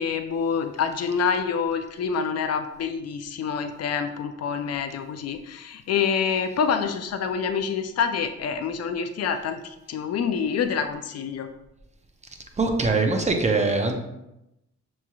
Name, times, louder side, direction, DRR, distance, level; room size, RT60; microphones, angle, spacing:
voice 1, 0.0-11.5, left 6 dB, 55° left, 8 dB, 0.4 m, -27 dB
voice 2, 12.6-13.9, right 3 dB, 25° right, 4 dB, 0.6 m, -22 dB
7.0 x 3.1 x 2.3 m, 0.88 s
cardioid pair, 90°, 30 cm